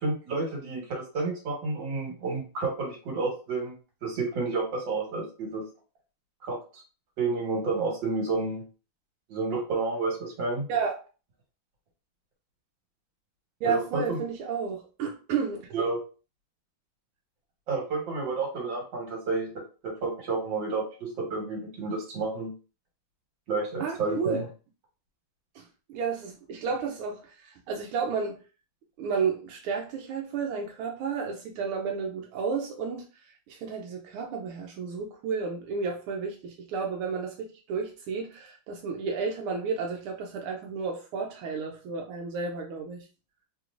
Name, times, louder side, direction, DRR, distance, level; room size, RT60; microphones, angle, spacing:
voice 1, 0.0-3.7 4.0-5.6 6.4-6.6 7.2-8.6 9.3-10.7 13.6-14.2 15.7-16.0 17.7-19.5 19.8-22.5 23.5-24.5, right 3 dB, 65° right, -1 dB, 2.0 m, -30 dB
voice 2, 13.6-15.7 23.8-24.4 25.5-25.6 25.9-28.4 29.0-33.1 33.5-43.1, right 5 dB, 90° right, 1 dB, 1.5 m, -32 dB
3.8 x 3.0 x 2.4 m, 0.35 s
omnidirectional pair, 2.3 m